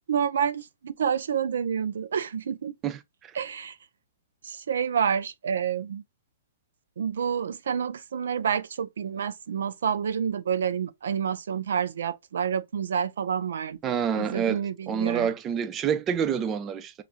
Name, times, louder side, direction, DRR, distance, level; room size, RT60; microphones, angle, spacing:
voice 1, 0.1-2.7 3.3-3.7 4.4-6.0 7.0-15.3, right 7 dB, 80° right, 0.5 m, -28 dB
voice 2, 2.8-3.3 13.8-16.9, right 7 dB, 15° right, 0.3 m, -28 dB
5.6 x 2.4 x 2.4 m
hypercardioid pair, 165°, 0 cm